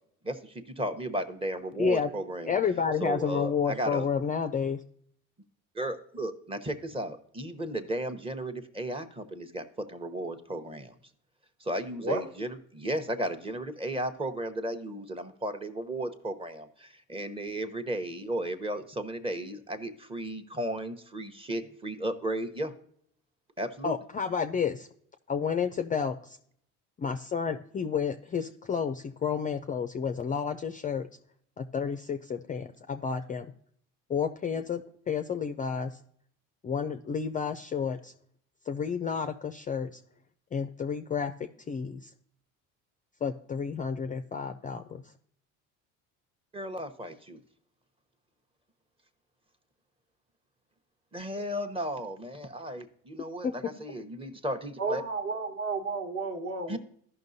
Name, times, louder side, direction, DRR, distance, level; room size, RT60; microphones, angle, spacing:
voice 1, 0.2-2.6 3.0-4.1 5.7-10.9 11.6-22.7 23.6-23.9 46.5-47.4 51.1-55.0 56.7-56.8, right 1 dB, 15° right, 7 dB, 0.9 m, -34 dB
voice 2, 1.8-2.1 2.5-4.8 23.8-24.9 25.3-26.4 27.0-31.1 31.6-33.5 34.1-34.8 35.1-35.9 36.6-38.1 38.7-39.9 40.5-42.0 43.2-44.8 53.4-53.5, left 6 dB, 25° left, 8 dB, 0.4 m, -30 dB
voice 3, 11.9-12.2 54.8-56.8, right 3 dB, 40° right, 4 dB, 1.3 m, -32 dB
13.5 x 5.8 x 2.6 m, 0.65 s
supercardioid pair, 95°, 35 cm